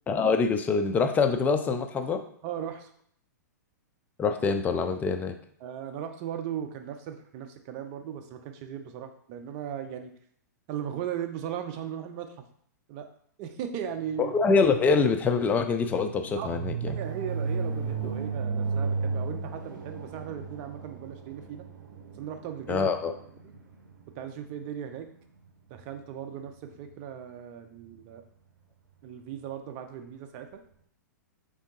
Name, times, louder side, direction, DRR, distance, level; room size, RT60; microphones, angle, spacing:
voice 1, 0.1-2.2 4.2-5.4 14.2-17.0 22.7-23.1, left 5 dB, 15° left, 7 dB, 0.4 m, -25 dB
voice 2, 2.4-2.9 5.6-10.1 10.7-12.3 12.9-13.1 13.4-14.3 16.4-16.6 16.9-21.6 22.2-22.9 23.4-23.5 24.2-25.1 25.7-28.2 29.0-30.6, right 9 dB, 40° right, 6 dB, 0.5 m, -37 dB
sound 1, 14.1-24.0, right 5 dB, 80° right, 0.6 m, -34 dB
3.5 x 2.7 x 3.8 m, 0.64 s
hypercardioid pair, 120°, 10 cm